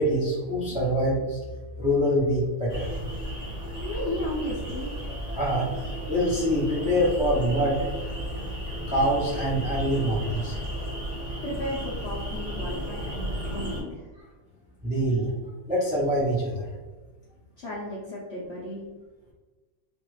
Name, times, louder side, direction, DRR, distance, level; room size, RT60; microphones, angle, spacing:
voice 1, 0.0-1.4 1.8-2.9 5.4-7.8 8.9-10.5 14.8-15.3 15.7-16.7, equal, 10° right, -8 dB, 0.3 m, -25 dB
sound 1, 2.7-13.8, equal, 30° right, 0.8 m, -34 dB
voice 2, 3.8-4.9 11.4-14.1 17.6-18.8, equal, 65° left, -6 dB, 0.6 m, -34 dB
3.0 x 2.4 x 3.1 m, 1.3 s
omnidirectional pair, 1.8 m